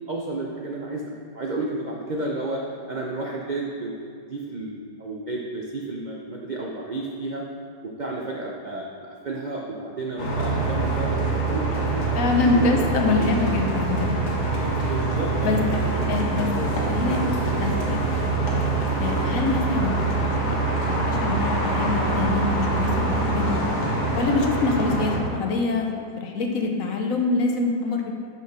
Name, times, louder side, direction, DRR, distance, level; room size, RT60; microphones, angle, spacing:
voice 1, 0.1-2.6 2.9-3.9 4.3-7.4 7.8-8.9 9.2-12.8 13.2-13.3 14.9-16.2 16.6-16.7, right 2 dB, 80° right, -1 dB, 0.4 m, -32 dB
sound 1, 10.2-25.2, right 3 dB, 85° left, 2.0 m, -24 dB
voice 2, 12.1-14.2 15.4-15.6 16.1-16.5 16.9-17.2 17.6-18.4 19.0-20.0 20.4-23.6 24.1-28.1, left 3 dB, 60° left, 2 dB, 1.2 m, -25 dB
6.1 x 5.7 x 5.9 m, 2.3 s
omnidirectional pair, 1.7 m